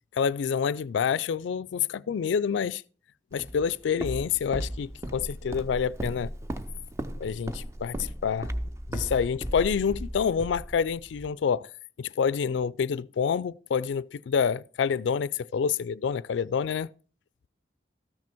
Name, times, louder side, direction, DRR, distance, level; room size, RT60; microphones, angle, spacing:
voice 1, 0.1-2.8 3.3-6.3 7.2-8.5 8.9-11.7 12.0-16.9, left 6 dB, 90° left, 0.4 m, -27 dB
Walk footsteps, 3.4-11.3, right 1 dB, 15° right, 0.5 m, -36 dB
13.5 x 6.1 x 4.4 m
head